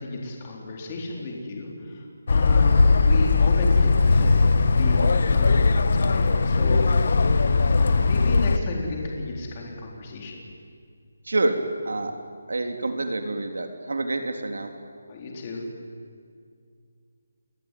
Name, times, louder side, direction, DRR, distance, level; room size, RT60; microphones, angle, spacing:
voice 1, 0.0-7.0 7.7-10.4 15.1-15.6, left 2 dB, 20° left, -1 dB, 4.0 m, -33 dB
sound 1, 2.3-8.6, left 4 dB, 45° left, 1.2 m, -19 dB
voice 2, 11.2-11.6 11.8-12.1 12.5-14.7, right 2 dB, 85° right, 5 dB, 3.5 m, -27 dB
29.5 x 20.0 x 9.3 m, 2.2 s
hypercardioid pair, 175°, 0 cm